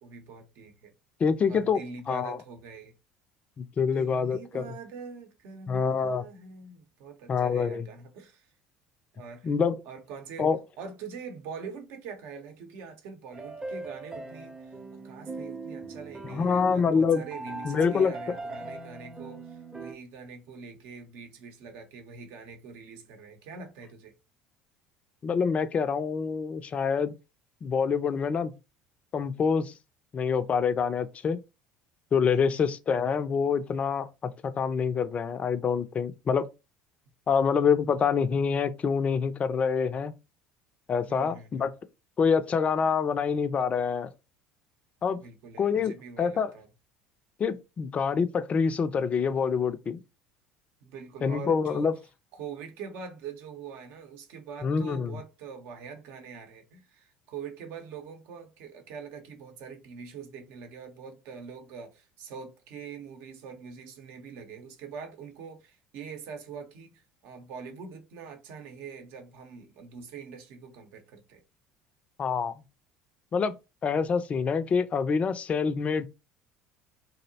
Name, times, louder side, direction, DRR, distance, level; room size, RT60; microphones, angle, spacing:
voice 1, 0.0-0.9 1.5-2.9 3.9-8.5 9.2-9.5 9.9-10.5 10.8-24.1 32.3-32.6 41.1-41.7 45.2-46.7 50.8-51.9 52.3-71.4, right 5 dB, 65° right, 0.7 m, -44 dB
voice 2, 1.2-1.8 2.1-2.4 3.6-4.6 5.7-6.2 7.3-7.8 9.4-9.8 10.4-10.6 16.3-17.2 17.6-18.1 25.2-27.1 27.6-28.5 29.1-29.7 30.1-31.4 32.1-36.4 37.3-40.1 40.9-41.7 42.2-44.1 45.0-45.2 45.6-46.5 47.4-50.0 51.2-51.9 54.6-55.1 72.2-72.5 73.3-73.5 73.8-76.0, left 6 dB, 35° left, 0.4 m, -26 dB
sound 1, 13.3-19.9, right 3 dB, 15° right, 0.6 m, -40 dB
2.6 x 2.0 x 2.7 m
hypercardioid pair, 65°, 4 cm